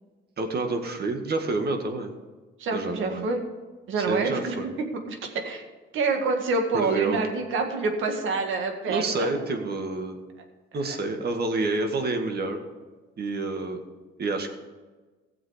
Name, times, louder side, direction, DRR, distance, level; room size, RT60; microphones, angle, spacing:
voice 1, 0.4-2.1 2.7-3.3 4.0-4.7 6.7-7.2 8.9-10.2 10.7-12.6 13.2-13.8 14.2-14.5, right 3 dB, 55° right, 5 dB, 1.8 m, -28 dB
voice 2, 2.6-3.4 3.9-4.6 5.1-5.6 5.9-9.3 10.9-11.0, right 3 dB, 80° right, 4 dB, 1.8 m, -27 dB
16.5 x 7.3 x 5.1 m, 1.3 s
cardioid pair, 90°, 20 cm